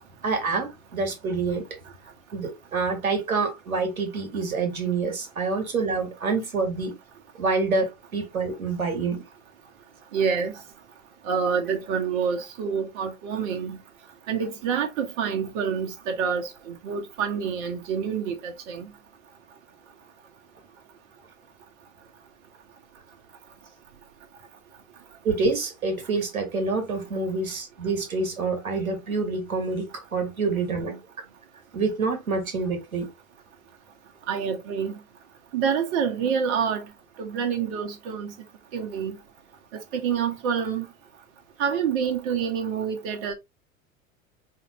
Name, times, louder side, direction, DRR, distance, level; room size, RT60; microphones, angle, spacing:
voice 1, 0.2-1.6 2.3-7.0 7.4-9.2 25.2-30.9 31.7-33.1, right 4 dB, 85° right, 1.5 m, -27 dB
voice 2, 10.1-10.5 11.2-13.8 14.3-18.9 30.6-30.8 34.3-34.9 35.5-36.8 37.2-38.3 38.7-39.2 39.9-40.8 41.6-43.3, right 7 dB, 55° right, 1.1 m, -27 dB
4.8 x 2.7 x 2.9 m
figure-of-eight pair, 85°, 41 cm